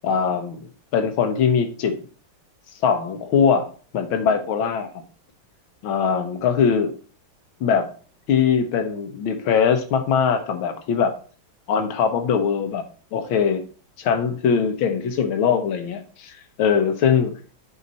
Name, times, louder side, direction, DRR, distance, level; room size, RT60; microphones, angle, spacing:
voice 1, 0.0-2.0 2.8-3.7 3.9-4.9 5.8-6.9 7.6-7.9 8.3-11.1 11.7-12.8 13.1-13.6 14.0-17.4, left 6 dB, 80° left, 8 dB, 1.8 m, -21 dB
8.1 x 5.0 x 4.1 m, 0.39 s
omnidirectional pair, 2.2 m